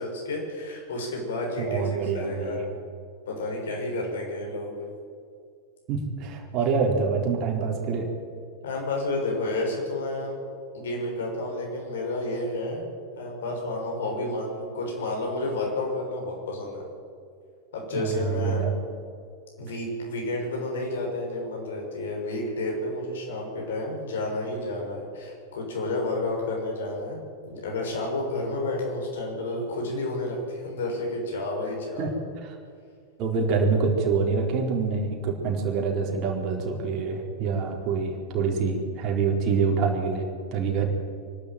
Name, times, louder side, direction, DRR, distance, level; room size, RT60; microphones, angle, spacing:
voice 1, 0.0-2.6 3.3-4.7 8.6-10.4 10.7-12.9 13.1-16.8 17.7-18.7 19.6-27.2 27.5-32.1, left 2 dB, 60° left, 0 dB, 6.4 m, -30 dB
voice 2, 1.6-2.6 5.9-8.1 17.9-18.7 32.0-32.1 33.2-40.9, right 5 dB, 35° right, 1 dB, 4.1 m, -26 dB
25.0 x 12.5 x 9.1 m, 2.3 s
figure-of-eight pair, 90°, 0 cm